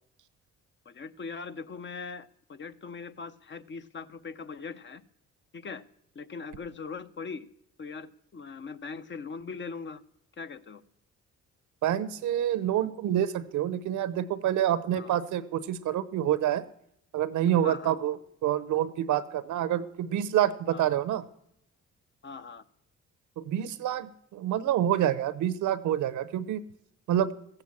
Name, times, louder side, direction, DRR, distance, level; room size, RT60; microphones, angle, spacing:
voice 1, 0.8-5.0 5.5-5.8 6.1-7.5 7.8-10.0 10.4-10.8 14.9-15.2 17.6-18.0 20.7-21.0 22.2-22.6, left 5 dB, 40° left, 11 dB, 0.8 m, -40 dB
voice 2, 11.8-16.6 17.1-21.2 23.4-26.6 27.1-27.3, right 11 dB, 80° right, 16 dB, 0.8 m, -27 dB
14.5 x 7.9 x 7.3 m, 0.73 s
cardioid pair, 90°, 30 cm